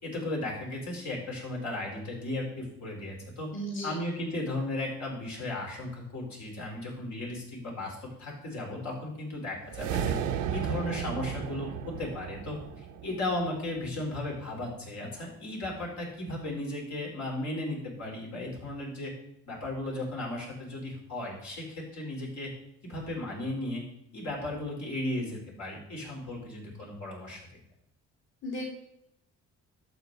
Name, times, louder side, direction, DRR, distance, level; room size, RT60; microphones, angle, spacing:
voice 1, 0.0-3.5 3.8-10.1 10.5-11.7 12.0-19.1 19.5-22.5 22.8-23.8 24.1-27.4, left 1 dB, 65° left, -2 dB, 4.0 m, -35 dB
voice 2, 3.5-3.9 28.4-28.7, equal, 40° left, -2 dB, 2.4 m, -35 dB
sound 1, 9.7-14.1, right 8 dB, 90° right, 0.7 m, -34 dB
11.5 x 7.1 x 4.0 m, 0.76 s
cardioid pair, 90°, 30 cm